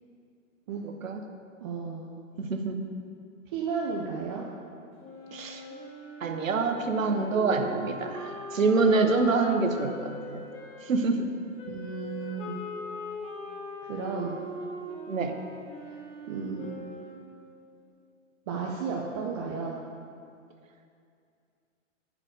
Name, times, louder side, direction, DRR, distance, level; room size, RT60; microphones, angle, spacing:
voice 1, 0.9-1.2 2.4-2.8 5.3-5.6 6.2-10.4 10.8-11.3 15.1-15.4, right 3 dB, 85° right, 5 dB, 1.0 m, -26 dB
voice 2, 1.6-2.1 3.5-4.5 7.1-7.2 7.5-7.7 11.7-12.5 13.8-14.4 15.8-16.0 16.3-16.8 18.5-19.8, right 5 dB, 25° right, -2 dB, 0.4 m, -34 dB
Wind instrument woodwind instrument, 5.0-10.9 11.6-17.4, left 2 dB, 15° left, 0.9 m, -41 dB
9.7 x 4.9 x 5.0 m, 2.4 s
hypercardioid pair, 135°, 39 cm